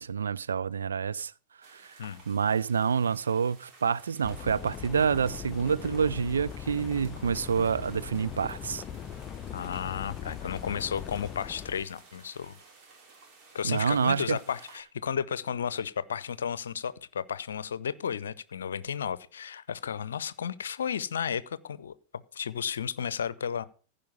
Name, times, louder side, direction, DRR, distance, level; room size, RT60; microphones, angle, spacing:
voice 1, 0.0-1.3 1.6-8.8 13.6-14.4, right 6 dB, 70° right, 0.4 m, -28 dB
sound 1, 1.6-14.8, right 4 dB, 40° right, 3.6 m, -56 dB
sound 2, 4.2-11.8, left 8 dB, 30° left, 0.6 m, -40 dB
voice 2, 9.5-12.6 13.5-21.9 22.3-23.6, left 7 dB, 65° left, 0.7 m, -33 dB
15.5 x 5.1 x 6.6 m
figure-of-eight pair, 90°, 0 cm